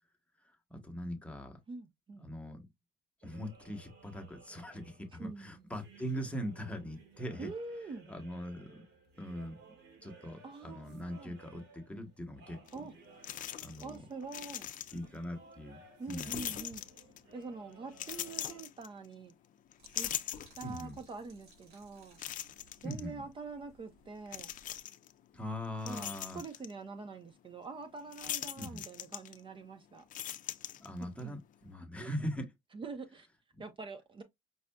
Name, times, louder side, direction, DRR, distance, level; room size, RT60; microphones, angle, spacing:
voice 1, 0.4-1.6 2.2-2.7 3.2-7.5 8.1-8.8 9.2-9.6 10.0-12.6 13.6-14.0 14.9-15.8 16.1-16.5 20.6-21.0 22.8-23.2 25.3-26.4 28.6-28.8 30.8-32.4, equal, 5° left, 1.0 m, -41 dB
voice 2, 1.7-2.3 5.1-5.5 7.4-8.1 10.4-11.4 12.7-12.9 13.8-14.7 16.0-16.8 17.3-19.3 20.0-20.1 20.6-22.2 22.8-24.5 25.8-30.0 31.0-31.4 32.0-32.1 32.7-33.3 33.6-34.2, right 4 dB, 30° right, 0.6 m, -45 dB
sound 1, 3.2-18.6, right 4 dB, 90° right, 1.7 m, -59 dB
sound 2, 12.7-12.8 13.2-14.0 14.2-15.2 16.1-17.3 17.9-19.3 19.7-21.0 21.5-21.6 22.2-23.0 24.3-25.1 25.6-26.7 28.1-29.6 30.0-31.2, left 11 dB, 50° left, 0.5 m, -41 dB
sound 3, 19.8-24.8, right 3 dB, 70° right, 2.4 m, -63 dB
5.3 x 2.4 x 2.2 m
cardioid pair, 110°, 17 cm